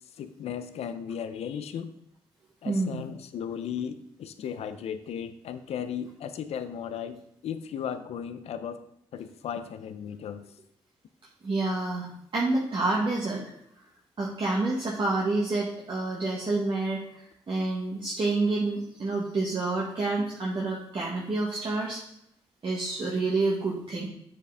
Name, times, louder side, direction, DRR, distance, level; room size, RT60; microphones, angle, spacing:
voice 1, 0.2-1.9 2.6-8.8 9.1-10.4, left 8 dB, 80° left, 11 dB, 0.5 m, -36 dB
voice 2, 2.6-3.0 11.4-13.4 14.2-22.0 22.6-24.1, right 2 dB, 50° right, -4 dB, 1.5 m, -28 dB
7.3 x 6.8 x 3.4 m, 0.73 s
supercardioid pair, 55°, 11 cm